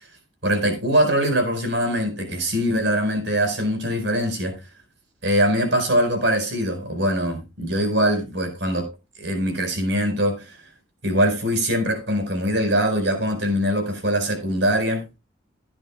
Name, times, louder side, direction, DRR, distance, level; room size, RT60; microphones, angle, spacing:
voice 1, 0.4-4.5 5.2-8.9 9.2-10.6 11.0-15.0, equal, 65° right, 4.7 m, -22 dB
16.5 x 9.8 x 2.3 m
head